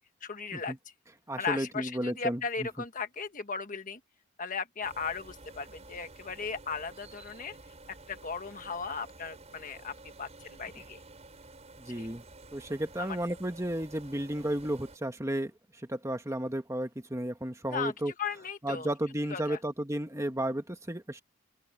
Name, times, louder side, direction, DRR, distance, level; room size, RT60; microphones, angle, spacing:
voice 1, 0.2-0.7 1.4-4.0 4.4-7.6 8.1-11.0 12.0-12.1 13.0-13.2 17.7-17.9 18.2-18.9 19.3-19.6, left 5 dB, 40° left, 1.4 m, -36 dB
voice 2, 1.3-2.7 10.8-10.9 11.8-12.2 12.5-18.1 18.6-21.2, right 1 dB, 15° right, 1.5 m, -33 dB
sound 1, 4.8-15.0, right 2 dB, 30° right, 5.6 m, -51 dB
open air
head